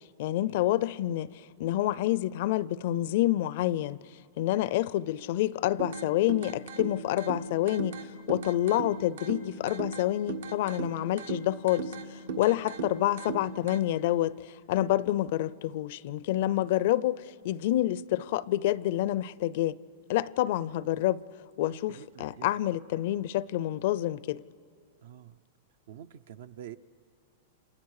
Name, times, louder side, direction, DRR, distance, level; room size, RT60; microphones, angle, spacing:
voice 1, 0.2-1.3 1.6-4.0 4.4-8.0 8.3-19.8 20.1-21.2 21.6-24.4, left 14 dB, 60° left, 0.5 m, -28 dB
sound 1, 5.8-13.8, right 4 dB, 90° right, 1.6 m, -38 dB
voice 2, 21.7-22.5 25.0-25.4 25.9-26.8, right 10 dB, 70° right, 0.6 m, -47 dB
29.5 x 27.5 x 4.9 m
supercardioid pair, 145°, 0 cm